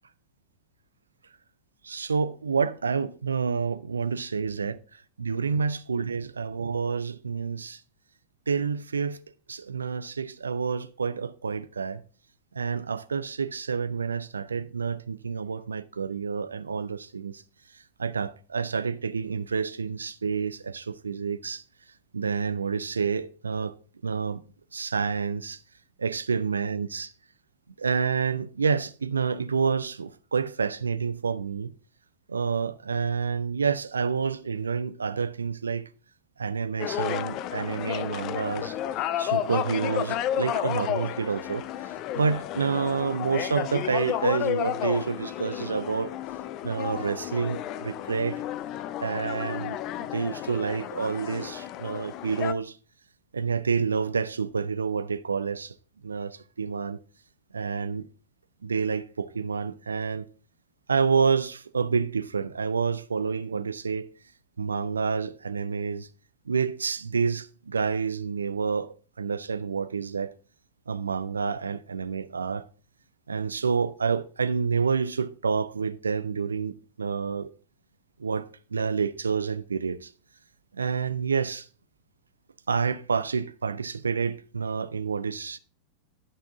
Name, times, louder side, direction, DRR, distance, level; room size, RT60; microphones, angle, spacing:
voice 1, 1.8-4.7 5.2-7.8 8.5-9.2 9.5-12.0 12.5-17.4 18.0-21.6 22.1-23.7 24.0-24.4 24.7-25.6 26.0-27.1 27.8-31.7 32.3-35.8 36.4-38.8 39.2-46.1 46.6-48.4 49.0-52.8 53.3-55.7 56.0-57.0 57.5-58.1 58.6-60.3 60.9-64.1 64.6-66.1 66.5-70.3 70.9-72.6 73.3-77.5 78.2-80.1 80.7-81.7 82.7-85.6, right 5 dB, 75° right, 0.4 m, -28 dB
sound 1, 36.8-52.5, left 11 dB, 40° left, 0.5 m, -32 dB
11.0 x 5.9 x 3.7 m
figure-of-eight pair, 90°, 0 cm